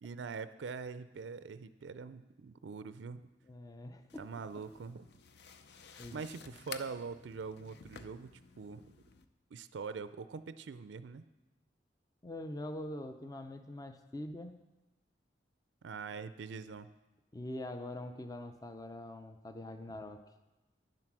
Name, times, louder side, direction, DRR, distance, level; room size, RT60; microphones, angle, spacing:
voice 1, 0.0-3.3 4.2-5.1 5.9-8.9 9.5-11.2 15.8-16.9, right 5 dB, 80° right, 13 dB, 0.4 m, -43 dB
voice 2, 3.5-4.2 6.0-6.2 12.2-14.5 17.3-20.2, left 1 dB, 20° left, 8 dB, 0.5 m, -43 dB
sound 1, 4.1-9.2, left 6 dB, 65° left, 0.6 m, -53 dB
10.0 x 7.6 x 6.0 m, 1.0 s
head